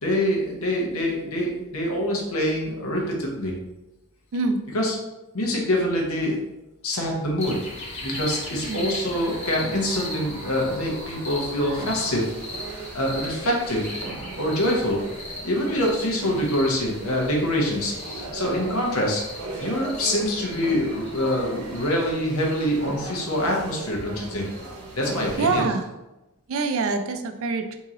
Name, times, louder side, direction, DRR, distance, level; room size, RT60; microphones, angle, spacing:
voice 1, 0.0-3.5 4.7-4.9 5.3-6.4 6.8-7.6 8.0-12.3 12.9-13.9 14.4-15.0 15.4-19.2 19.6-24.5 24.9-25.7, left 1 dB, 65° left, -1 dB, 0.9 m, -25 dB
sound 1, 7.4-25.3, left 1 dB, 30° left, 0.9 m, -39 dB
sound 2, 8.1-25.7, right 2 dB, 80° right, 0.8 m, -38 dB
voice 2, 8.5-8.8 25.4-25.9 26.5-27.8, right 3 dB, 60° right, 7 dB, 0.4 m, -25 dB
3.0 x 2.7 x 3.7 m, 0.98 s
head